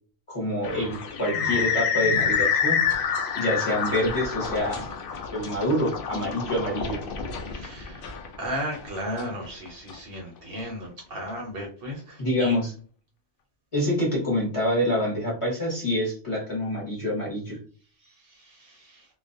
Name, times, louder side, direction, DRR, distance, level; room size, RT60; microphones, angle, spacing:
voice 1, 0.3-2.8 3.3-4.8 5.3-7.0 12.2-12.7 13.7-17.6, left 1 dB, 30° left, -5 dB, 0.9 m, -26 dB
sound 1, 0.6-9.9, left 6 dB, 60° left, 0.6 m, -28 dB
voice 2, 7.4-12.5 18.0-19.1, equal, 60° right, 0 dB, 0.8 m, -35 dB
2.4 x 2.1 x 2.5 m, 0.42 s
omnidirectional pair, 1.2 m